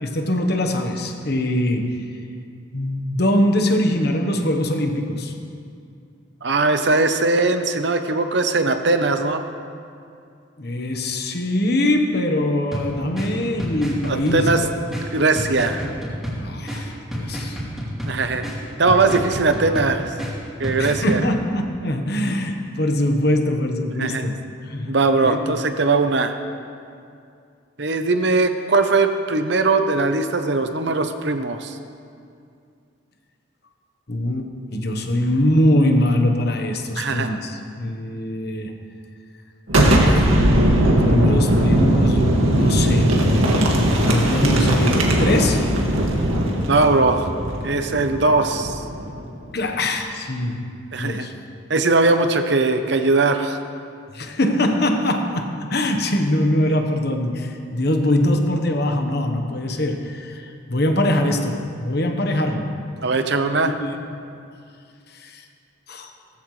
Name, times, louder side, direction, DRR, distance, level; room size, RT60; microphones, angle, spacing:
voice 1, 0.0-2.0 2.7-5.3 10.6-14.7 16.4-17.6 19.1-19.2 20.8-24.9 25.2-25.4 34.1-38.7 40.1-40.4 40.8-43.2 44.0-45.8 49.5-50.7 51.0-51.3 54.1-62.7 63.7-63.9 65.1-65.4 65.9-66.1, left 1 dB, 50° left, 4 dB, 1.1 m, -22 dB
voice 2, 6.4-9.4 14.1-14.6 15.1-15.9 18.1-18.4 18.8-20.1 20.6-21.2 24.0-24.3 24.9-26.4 27.8-31.8 37.0-37.3 46.7-47.3 47.6-48.8 50.9-51.3 51.7-53.6 63.0-63.7, right 3 dB, 55° right, 7 dB, 0.8 m, -20 dB
sound 1, 12.7-21.2, equal, ahead, 3.3 m, -30 dB
Boom, 39.7-49.3, right 1 dB, 90° right, 2.0 m, -19 dB
18.5 x 14.5 x 3.3 m, 2.4 s
head